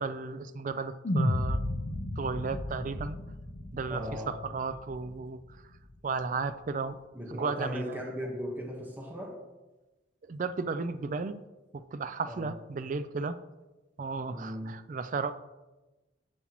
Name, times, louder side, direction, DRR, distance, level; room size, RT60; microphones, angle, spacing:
voice 1, 0.0-1.7 2.2-3.2 3.7-5.4 6.0-7.0 7.3-8.0 10.3-11.4 11.9-13.4 14.0-15.4, right 4 dB, 45° right, 11 dB, 0.4 m, -34 dB
sound 1, 1.0-5.4, left 1 dB, 45° left, 0.6 m, -33 dB
voice 2, 3.9-4.3 7.1-9.3 12.3-12.5 14.3-14.7, equal, 10° right, -1 dB, 1.3 m, -37 dB
11.0 x 7.3 x 3.0 m, 1.1 s
head